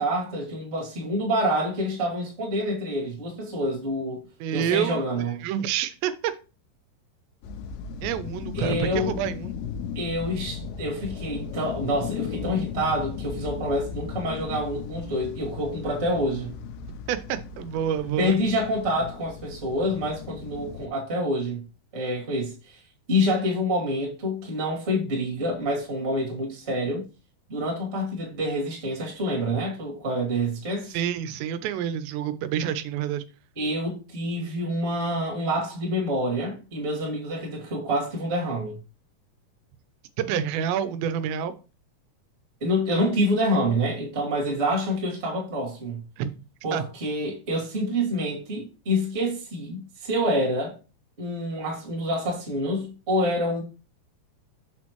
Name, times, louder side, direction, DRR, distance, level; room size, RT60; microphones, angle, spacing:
voice 1, 0.0-4.2 4.5-5.4 8.5-9.2 9.9-16.5 18.2-21.6 21.9-22.8 23.1-27.0 27.5-31.0 33.5-38.8 42.6-46.0 46.6-50.8 51.2-53.6, equal, 25° right, 1.4 m, -27 dB
voice 2, 4.4-5.0 5.4-6.3 8.0-9.5 17.1-18.4 30.9-33.2 40.2-41.5 46.2-46.3 46.7-46.8, right 9 dB, 90° right, 2.9 m, -28 dB
sound 1, 7.4-20.9, left 7 dB, 90° left, 2.9 m, -36 dB
6.7 x 6.2 x 3.0 m
omnidirectional pair, 4.9 m